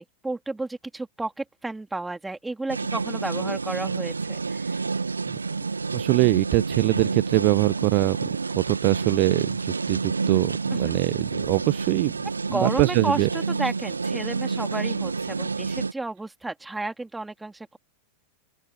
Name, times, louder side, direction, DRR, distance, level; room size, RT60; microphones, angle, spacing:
voice 1, 0.0-4.8 10.7-10.9 12.5-17.8, right 2 dB, 5° right, 3.1 m, -32 dB
sound 1, 2.7-15.9, right 4 dB, 75° right, 1.9 m, -29 dB
voice 2, 5.9-8.2 8.5-12.1 12.5-13.3, right 36 dB, 45° right, 1.2 m, -23 dB
open air
figure-of-eight pair, 90°, 0 cm